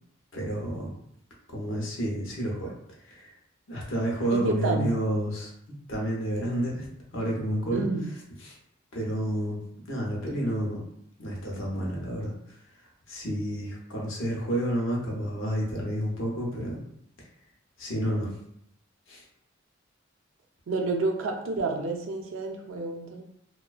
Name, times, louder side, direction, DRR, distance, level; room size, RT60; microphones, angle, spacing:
voice 1, 0.3-0.9 1.5-2.7 3.0-3.3 3.7-5.5 5.9-6.9 7.1-7.8 8.4-8.6 8.9-9.6 9.9-10.8 11.2-12.3 13.1-16.8 17.8-18.3 19.1-19.2, right 1 dB, 75° left, -3 dB, 0.7 m, -30 dB
voice 2, 4.3-4.9 7.7-8.1 20.7-23.2, right 3 dB, 80° right, 2 dB, 0.4 m, -29 dB
2.4 x 2.2 x 2.4 m, 0.72 s
head